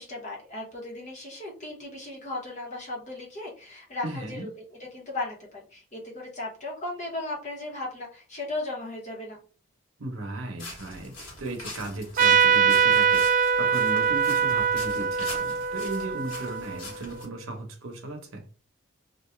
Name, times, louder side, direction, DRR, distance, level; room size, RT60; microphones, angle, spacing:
voice 1, 0.0-4.5 4.8-9.4, left 2 dB, 35° left, 0.9 m, -36 dB
voice 2, 4.0-4.5 10.0-18.4, right 2 dB, 70° right, 0.8 m, -36 dB
sound 1, 10.6-17.2, left 2 dB, 60° left, 1.2 m, -43 dB
Trumpet, 12.2-17.3, right 6 dB, 40° right, 0.3 m, -23 dB
2.5 x 2.3 x 3.2 m
head